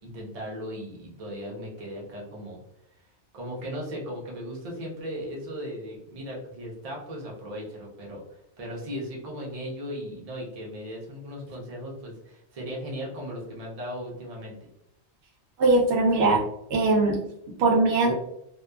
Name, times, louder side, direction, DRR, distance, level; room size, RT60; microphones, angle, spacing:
voice 1, 0.0-2.6 3.3-14.5, equal, 40° right, -2 dB, 0.7 m, -37 dB
voice 2, 15.6-16.4 16.7-17.2 17.6-18.1, right 2 dB, 85° right, 0 dB, 0.9 m, -20 dB
2.7 x 2.2 x 2.2 m, 0.80 s
omnidirectional pair, 1.1 m